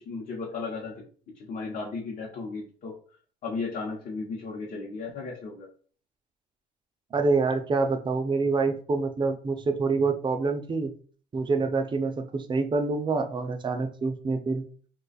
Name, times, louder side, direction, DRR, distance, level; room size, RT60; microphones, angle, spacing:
voice 1, 0.1-1.0 1.3-2.9 3.4-5.7, left 4 dB, 55° left, -3 dB, 0.8 m, -35 dB
voice 2, 7.1-10.9 11.3-14.6, right 4 dB, 30° right, 7 dB, 0.5 m, -26 dB
2.4 x 2.3 x 4.0 m, 0.43 s
cardioid pair, 110°, 17 cm